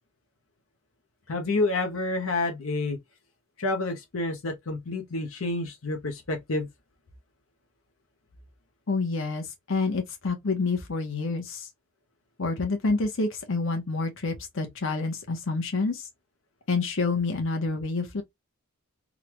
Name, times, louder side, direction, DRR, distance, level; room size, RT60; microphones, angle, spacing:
voice 1, 1.3-3.0 3.6-6.7, left 2 dB, 85° left, 0.9 m, -29 dB
voice 2, 8.9-11.7 12.4-16.0 16.7-18.2, left 3 dB, 65° left, 1.1 m, -28 dB
3.7 x 2.3 x 3.0 m
head